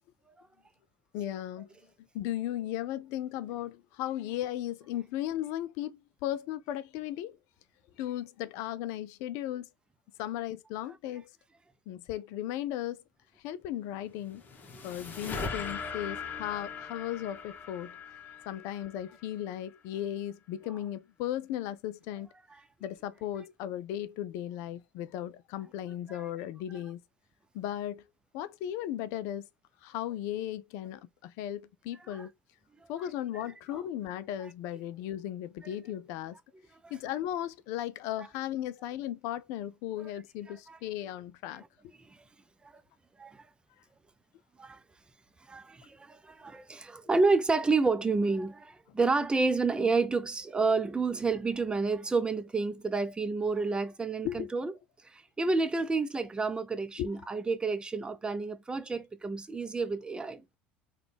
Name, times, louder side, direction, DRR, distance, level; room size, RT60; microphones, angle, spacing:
voice 1, 1.1-1.7 2.1-7.4 8.0-9.7 10.2-11.3 11.9-13.0 13.4-14.4 14.8-18.0 18.5-22.3 22.8-27.0 27.5-28.0 28.3-29.5 29.8-32.3 32.9-36.4 36.9-41.6 54.2-54.5 57.0-57.3, left 12 dB, 65° left, 0.3 m, -36 dB
sound 1, 14.1-19.5, left 5 dB, 35° left, 1.1 m, -40 dB
voice 2, 45.5-54.7 55.1-60.4, right 3 dB, 15° right, 0.5 m, -29 dB
3.9 x 2.3 x 3.3 m
hypercardioid pair, 75°, 6 cm